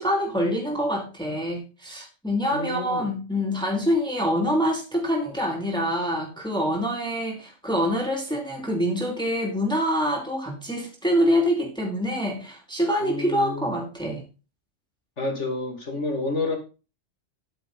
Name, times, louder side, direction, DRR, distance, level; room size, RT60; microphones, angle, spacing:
voice 1, 0.0-14.2, equal, 5° left, 2.7 m, -25 dB
voice 2, 2.5-3.1 13.0-13.7 15.2-16.6, left 2 dB, 75° left, 2.9 m, -29 dB
9.7 x 9.6 x 3.9 m
omnidirectional pair, 1.2 m